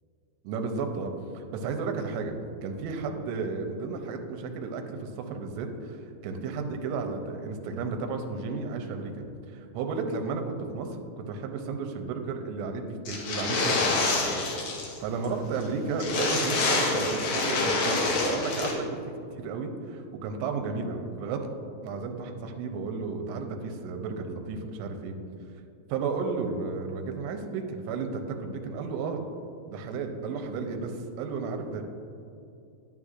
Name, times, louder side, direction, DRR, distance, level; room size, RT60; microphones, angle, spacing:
voice 1, 0.4-2.4 2.6-6.0 6.2-10.9 11.2-14.2 15.0-19.0 19.3-21.5 21.8-25.2 25.9-29.2 29.7-31.8, right 4 dB, 80° right, 4 dB, 2.7 m, -33 dB
sound 1, 13.0-15.0 15.2-15.3 15.6-15.7 16.0-18.7, left 3 dB, 80° left, 1.6 m, -27 dB
9.6 x 9.3 x 2.4 m, 2.6 s
omnidirectional pair, 5.0 m